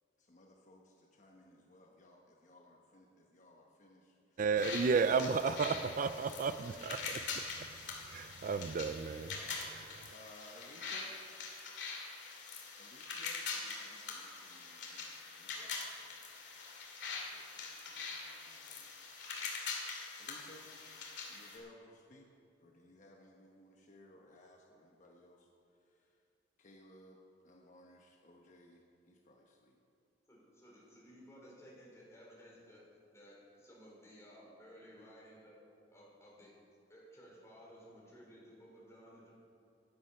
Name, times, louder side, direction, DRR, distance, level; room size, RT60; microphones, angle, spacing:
voice 1, 0.2-4.4 9.3-9.8 10.1-11.1 12.8-16.1 17.1-19.1 20.2-20.7 21.3-22.3 22.6-25.5 25.8-26.2 26.6-27.2 27.4-29.8, left 1 dB, 45° left, 0 dB, 1.1 m, -60 dB
voice 2, 4.4-7.2 8.1-9.4 10.0-10.1, right 5 dB, 45° right, 11 dB, 0.4 m, -33 dB
sound 1, 4.6-21.6, left 4 dB, 70° left, 2.4 m, -44 dB
voice 3, 30.3-32.8 33.1-35.6 35.9-36.5 36.9-39.3, equal, 15° left, -4 dB, 3.8 m, -57 dB
14.0 x 9.6 x 5.7 m, 2.6 s
head